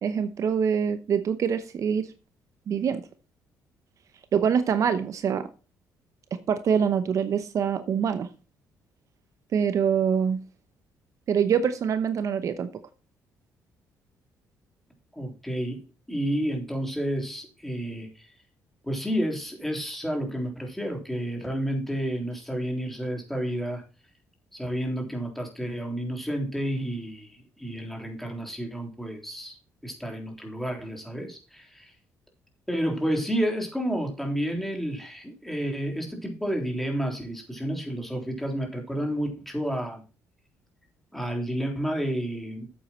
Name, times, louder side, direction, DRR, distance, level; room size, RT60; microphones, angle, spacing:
voice 1, 0.0-2.1 2.7-3.0 4.3-5.5 6.3-8.3 9.5-10.4 11.3-12.7, right 7 dB, 55° right, 11 dB, 0.8 m, -25 dB
voice 2, 15.1-15.8 16.1-18.3 18.8-23.8 24.5-29.6 29.8-31.9 32.7-40.0 41.1-42.7, equal, 5° left, 2 dB, 3.3 m, -30 dB
8.2 x 8.2 x 4.3 m, 0.33 s
cardioid pair, 90°, 6 cm